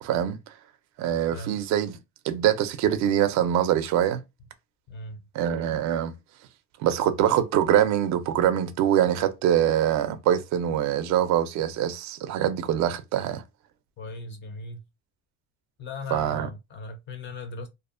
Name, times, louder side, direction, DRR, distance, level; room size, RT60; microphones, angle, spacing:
voice 1, 0.0-0.4 1.0-2.0 2.2-4.2 5.3-6.1 6.8-13.4 16.1-16.5, right 10 dB, 45° right, 0.4 m, -24 dB
voice 2, 4.9-5.2 14.0-14.8 15.8-17.7, left 2 dB, 30° left, 0.4 m, -38 dB
2.5 x 2.0 x 2.4 m
cardioid pair, 150°, 42 cm